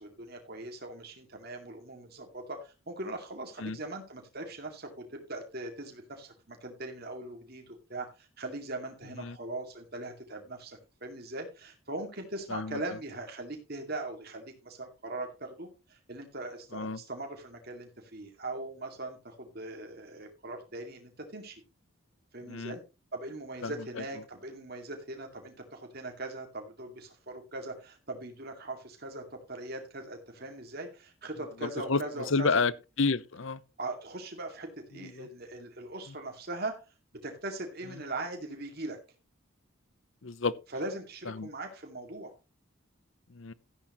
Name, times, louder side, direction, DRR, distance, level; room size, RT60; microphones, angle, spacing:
voice 1, 0.0-21.6 22.3-22.8 23.1-32.6 33.8-36.8 37.2-39.0 40.7-42.3, right 2 dB, 45° right, 2.3 m, -40 dB
voice 2, 23.6-24.0 31.6-32.0 32.3-32.7 33.0-33.6 35.0-35.3 40.2-40.5 41.4-41.5 43.3-43.5, left 4 dB, 65° left, 0.8 m, -30 dB
14.0 x 10.5 x 3.1 m
head